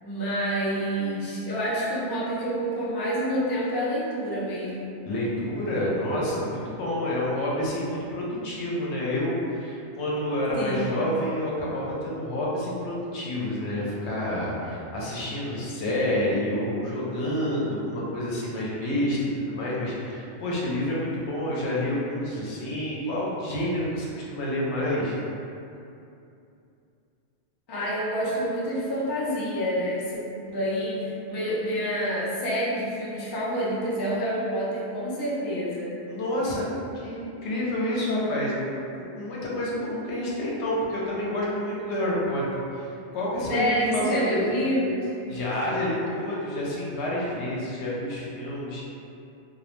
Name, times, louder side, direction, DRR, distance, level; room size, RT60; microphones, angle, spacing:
voice 1, 0.0-4.9 10.6-10.9 27.7-30.2 30.5-35.9 43.5-45.1, equal, 45° left, -8 dB, 0.3 m, -28 dB
voice 2, 5.1-25.2 36.1-36.6 36.9-38.5 39.0-42.4 42.7-44.4 45.3-48.9, left 1 dB, 75° left, -5 dB, 0.9 m, -28 dB
2.3 x 2.0 x 3.0 m, 2.7 s
omnidirectional pair, 1.2 m